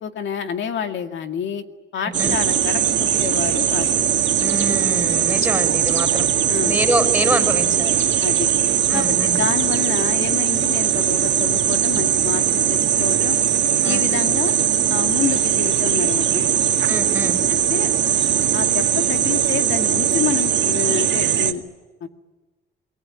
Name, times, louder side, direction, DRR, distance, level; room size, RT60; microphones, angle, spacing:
voice 1, 0.0-1.6 1.9-3.9 6.5-6.8 8.2-8.5 8.9-13.4 13.8-14.5 14.9-16.5 17.5-17.9 18.5-21.6 22.0-22.1, left 8 dB, 70° left, 6 dB, 2.2 m, -28 dB
voice 2, 2.0-2.4 4.4-6.3 6.6-7.9 8.9-9.4 13.8-14.1 16.9-17.4, equal, 5° right, 5 dB, 6.2 m, -25 dB
sound 1, 2.1-21.5, right 9 dB, 65° right, 2.1 m, -20 dB
27.5 x 20.0 x 10.0 m, 1.2 s
cardioid pair, 90°, 20 cm